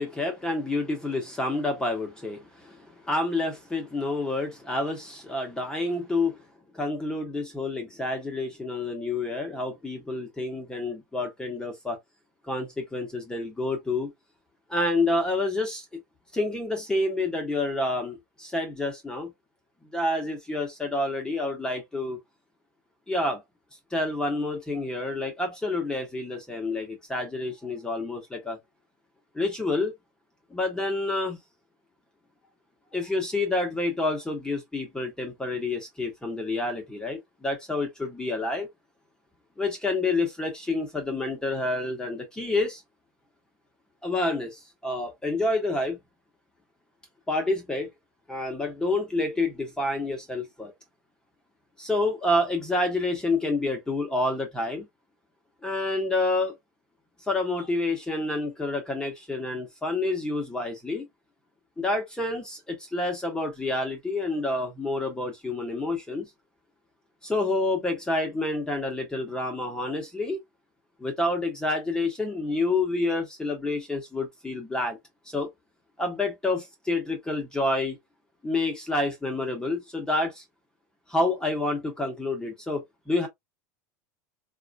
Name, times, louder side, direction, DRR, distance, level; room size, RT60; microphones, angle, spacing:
voice 1, 0.0-6.4 6.7-12.0 12.5-14.1 14.7-15.8 16.3-19.3 19.9-22.2 23.1-23.4 23.9-28.6 29.3-29.9 30.5-31.4 32.9-38.7 39.6-42.8 44.0-46.0 47.3-47.9 48.3-50.7 51.8-54.9 55.6-56.5 57.2-61.1 61.8-66.3 67.2-70.4 71.0-75.0 75.2-75.5 76.0-78.0 78.4-80.4 81.1-83.3, left 2 dB, 10° left, 1.0 m, -28 dB
4.1 x 2.4 x 2.2 m
figure-of-eight pair, 80°, 10 cm